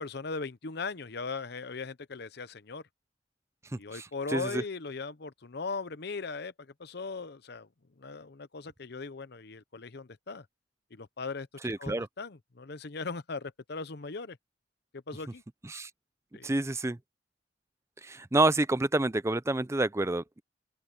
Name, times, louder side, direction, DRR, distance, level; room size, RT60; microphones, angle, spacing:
voice 1, 0.0-2.8 3.7-7.7 8.0-10.5 10.9-14.4 14.9-15.4 16.3-16.5, left 4 dB, 60° left, 0.8 m, -39 dB
voice 2, 3.7-4.0 4.3-4.6 11.6-12.1 15.7-15.9 16.4-17.0 18.0-20.4, right 2 dB, 15° right, 0.5 m, -28 dB
open air
head